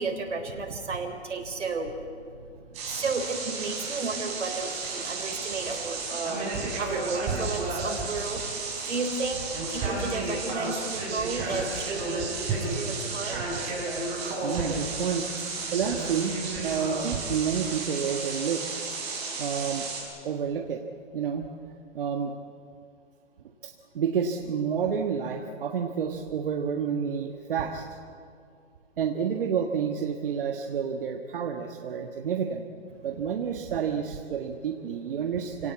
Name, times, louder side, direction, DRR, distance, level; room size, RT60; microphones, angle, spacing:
voice 1, 0.0-2.0 2.7-13.6, right 4 dB, 85° right, 3 dB, 3.9 m, -33 dB
sound 1, 2.7-20.0, right 3 dB, 20° right, 6.4 m, -32 dB
voice 2, 14.4-15.3 15.7-16.3 16.6-18.8 19.4-19.9 20.2-20.8 21.1-21.5 21.9-22.3 23.6-27.8 29.0-32.7 33.0-35.7, right 7 dB, 50° right, 3 dB, 1.6 m, -29 dB
28.5 x 18.0 x 8.4 m, 2.3 s
hypercardioid pair, 160°, 35 cm